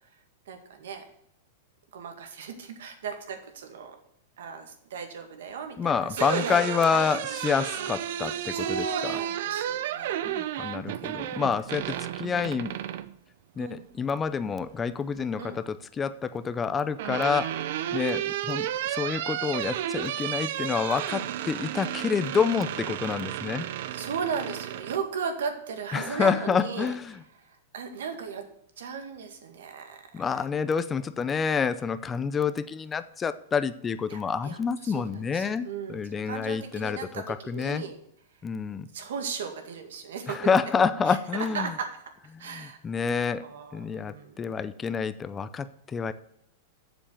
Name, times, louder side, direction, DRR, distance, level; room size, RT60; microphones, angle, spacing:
voice 1, 0.5-1.0 1.9-4.0 4.4-6.6 6.9-7.9 8.3-10.6 11.0-11.4 11.9-12.6 13.6-13.8 15.4-15.6 17.9-18.2 23.9-26.9 27.7-28.5 28.8-30.2 34.1-37.9 38.9-40.5 41.1-42.0 42.4-42.8 43.4-44.4, right 6 dB, 80° right, 5 dB, 1.9 m, -36 dB
voice 2, 5.8-9.2 10.3-12.7 13.6-17.5 17.9-23.7 25.9-27.2 30.1-37.8 38.4-38.9 40.3-41.7 42.3-43.4 43.7-46.1, left 6 dB, 15° left, 13 dB, 0.5 m, -28 dB
sound 1, 6.2-13.1 14.6-15.3 16.5-25.0, right 12 dB, 60° right, 0.6 m, -33 dB
7.3 x 7.0 x 6.7 m, 0.74 s
supercardioid pair, 150°, 0 cm